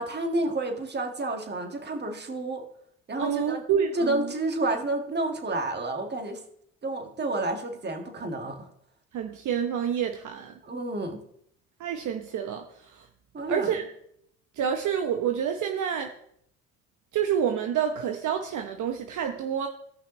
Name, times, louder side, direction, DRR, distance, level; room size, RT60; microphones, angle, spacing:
voice 1, 0.0-2.6 3.1-3.6 3.9-6.4 6.8-8.7 10.6-11.2 13.3-13.7, right 2 dB, 30° right, 4 dB, 1.9 m, -30 dB
voice 2, 3.2-4.3 9.1-10.5 11.8-13.1 13.5-13.9 14.6-16.1 17.1-19.7, right 8 dB, 60° right, 5 dB, 1.0 m, -28 dB
16.5 x 5.8 x 3.2 m, 0.69 s
supercardioid pair, 90°, 34 cm